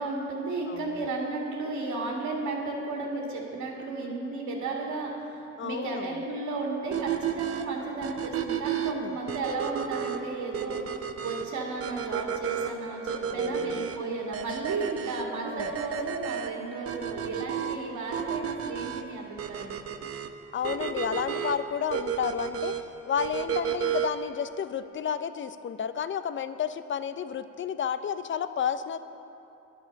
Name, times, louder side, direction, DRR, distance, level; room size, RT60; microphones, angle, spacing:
voice 1, 0.0-19.8, right 3 dB, 75° right, -2 dB, 1.9 m, -34 dB
voice 2, 0.7-1.1 5.6-6.2 8.8-9.1 13.3-13.8 15.5-15.7 20.5-22.8 23.1-29.0, left 8 dB, 40° left, 12 dB, 0.6 m, -31 dB
sound 1, 6.9-24.3, right 8 dB, 50° right, 0.8 m, -33 dB
10.5 x 9.1 x 6.4 m, 2.9 s
cardioid pair, 90°, 30 cm